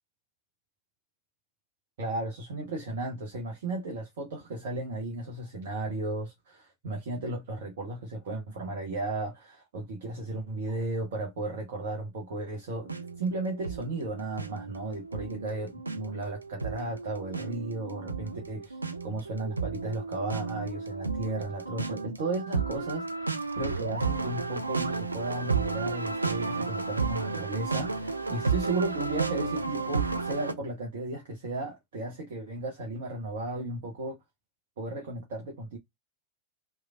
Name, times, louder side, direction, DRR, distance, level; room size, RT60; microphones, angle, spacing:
voice 1, 2.0-34.2 34.8-35.8, right 2 dB, 55° right, 0.8 m, -35 dB
sound 1, 12.9-30.5, right 4 dB, 80° right, 0.3 m, -33 dB
3.1 x 2.2 x 2.4 m
figure-of-eight pair, 90°, 0 cm